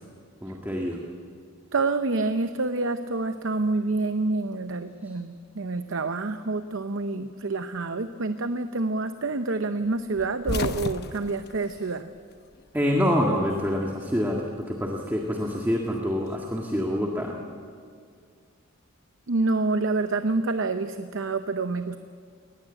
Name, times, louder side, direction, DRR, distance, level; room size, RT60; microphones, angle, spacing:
voice 1, 0.4-1.0 5.0-5.2 12.7-17.3, equal, 10° right, 0 dB, 1.7 m, -26 dB
voice 2, 1.7-12.1 19.3-22.0, right 3 dB, 60° right, 9 dB, 0.7 m, -27 dB
sound 1, 10.1-12.7 13.0-14.0 15.2-16.7, left 2 dB, 50° left, 0.9 m, -34 dB
21.0 x 19.5 x 9.0 m, 2.1 s
head